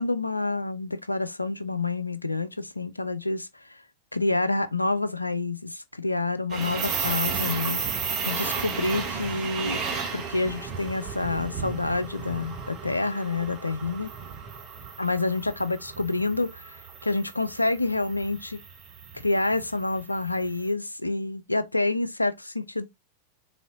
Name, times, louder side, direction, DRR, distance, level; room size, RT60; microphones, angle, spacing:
voice 1, 0.0-3.8 4.1-7.8 8.3-9.8 10.1-14.1 15.0-18.6 19.1-22.9, left 2 dB, 85° left, 0.4 m, -28 dB
sound 1, 6.5-20.5, right 6 dB, 35° right, 1.1 m, -34 dB
4.0 x 3.7 x 2.6 m
figure-of-eight pair, 90°, 0 cm